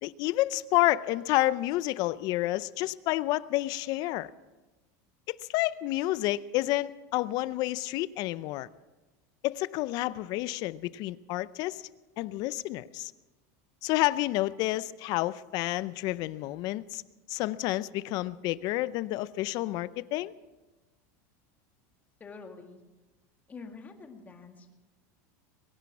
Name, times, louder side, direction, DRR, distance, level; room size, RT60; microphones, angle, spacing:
voice 1, 0.0-4.3 5.3-8.7 9.4-11.8 12.2-13.1 13.8-17.0 17.3-20.3, left 17 dB, 50° left, 0.6 m, -29 dB
voice 2, 22.2-22.8 23.5-24.8, left 4 dB, 20° left, 2.0 m, -46 dB
22.5 x 10.5 x 6.0 m
supercardioid pair, 140°, 9 cm